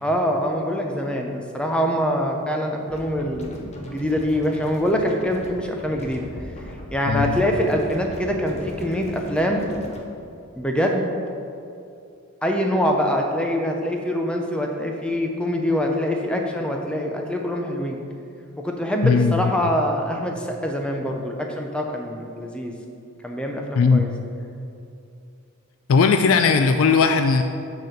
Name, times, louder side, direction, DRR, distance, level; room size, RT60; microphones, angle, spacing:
voice 1, 0.0-6.3 6.7-9.6 10.6-11.1 12.4-18.0 18.6-22.7 23.2-24.1, equal, 5° left, 2 dB, 0.6 m, -24 dB
sound 1, 2.9-10.0, left 1 dB, 30° left, 0.8 m, -38 dB
voice 2, 7.1-7.4 19.0-19.5 23.8-24.1 25.9-27.4, left 5 dB, 65° left, 6 dB, 0.3 m, -18 dB
6.6 x 4.1 x 6.4 m, 2.6 s
head